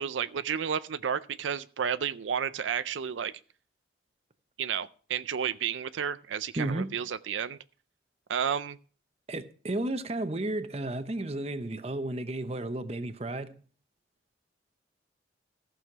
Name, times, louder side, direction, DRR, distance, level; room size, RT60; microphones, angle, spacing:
voice 1, 0.0-3.3 4.6-7.6 8.3-8.8, right 7 dB, 85° right, 0.5 m, -31 dB
voice 2, 6.6-6.9 9.3-13.5, right 2 dB, 35° right, 0.8 m, -33 dB
14.5 x 6.4 x 5.9 m
head